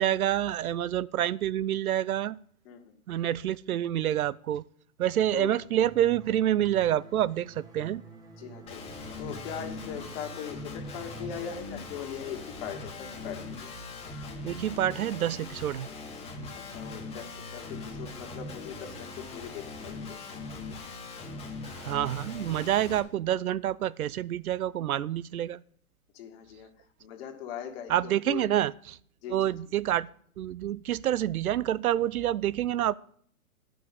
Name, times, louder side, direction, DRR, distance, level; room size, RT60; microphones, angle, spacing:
voice 1, 0.0-2.4 3.1-4.6 5.0-8.0 14.4-15.9 21.8-25.6 27.9-29.0 29.3-30.1 30.4-32.9, right 12 dB, 70° right, 21 dB, 0.6 m, -27 dB
sound 1, 5.8-11.4, right 5 dB, 10° right, 0.7 m, -49 dB
voice 2, 8.4-8.8 9.2-13.7 14.9-15.0 16.5-20.2 26.1-26.7 27.0-28.5 29.2-29.5, left 8 dB, 40° left, 4 dB, 2.0 m, -40 dB
Guitar, 8.7-23.0, left 3 dB, 15° left, 1.5 m, -41 dB
11.0 x 6.2 x 8.0 m, 0.63 s
hypercardioid pair, 130°, 44 cm